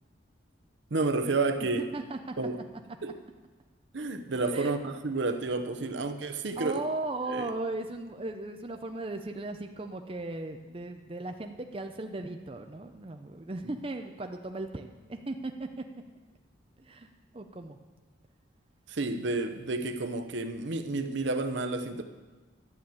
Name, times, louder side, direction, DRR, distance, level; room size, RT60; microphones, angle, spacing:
voice 1, 0.9-1.8 2.4-2.6 3.0-3.1 3.9-6.8 7.3-7.5 18.9-22.0, right 3 dB, 70° right, 7 dB, 0.8 m, -30 dB
voice 2, 1.7-2.4 4.5-4.7 5.8-6.0 6.6-15.7 16.8-17.8, right 2 dB, 30° right, 5 dB, 0.6 m, -37 dB
11.0 x 7.1 x 7.8 m, 1.3 s
head